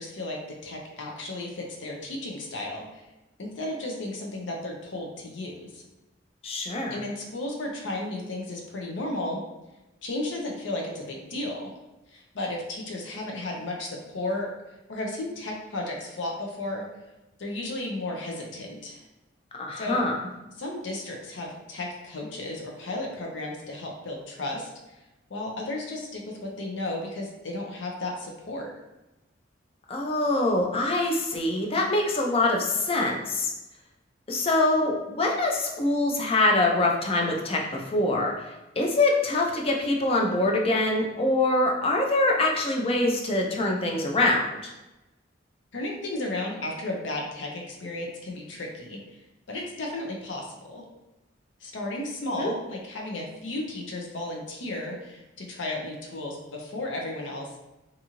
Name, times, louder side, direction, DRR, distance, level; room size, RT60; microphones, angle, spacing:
voice 1, 0.0-2.8 3.4-5.8 6.9-9.4 10.0-11.7 12.1-14.5 14.9-16.8 17.4-19.0 19.8-20.0 20.6-24.7 25.3-28.7 45.7-49.0 49.5-50.8 51.6-57.5, left 2 dB, 75° left, 0 dB, 0.6 m, -34 dB
voice 2, 6.4-7.0 19.6-20.1 29.9-33.5 34.3-38.3 38.8-44.7 52.4-52.5, left 2 dB, 30° left, 0 dB, 0.4 m, -24 dB
2.6 x 2.4 x 2.9 m, 1.0 s
head